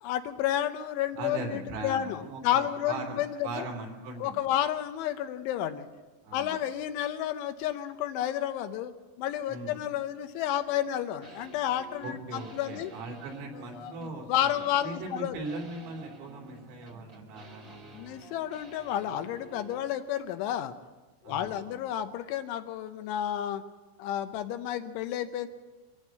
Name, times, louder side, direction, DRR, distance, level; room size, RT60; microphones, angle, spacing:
voice 1, 0.0-3.7 4.2-5.9 6.3-12.9 13.8-14.0 14.3-15.4 17.9-20.7 21.3-23.6 24.0-25.5, left 11 dB, 80° left, 9 dB, 3.1 m, -31 dB
voice 2, 1.2-4.4 6.2-6.6 9.5-9.8 12.0-18.2 21.2-21.8, right 2 dB, 80° right, 1 dB, 5.8 m, -40 dB
sound 1, 11.2-19.9, right 3 dB, 40° right, 1.1 m, -51 dB
24.0 x 15.0 x 7.6 m, 1.2 s
omnidirectional pair, 5.8 m